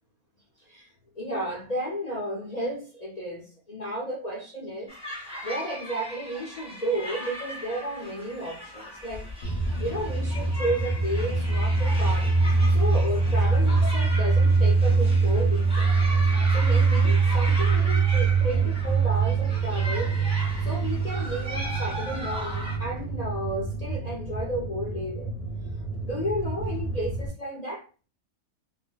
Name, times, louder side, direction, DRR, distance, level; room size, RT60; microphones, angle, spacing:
voice 1, 1.2-9.3 9.8-12.3 12.7-16.0 16.5-20.2 20.6-25.3 26.0-27.8, equal, 65° left, 0.4 m, -33 dB
sound 1, 4.9-22.8, equal, 5° right, 0.6 m, -38 dB
sound 2, 9.4-27.3, right 4 dB, 35° left, 0.7 m, -24 dB
2.5 x 2.1 x 3.8 m
omnidirectional pair, 1.5 m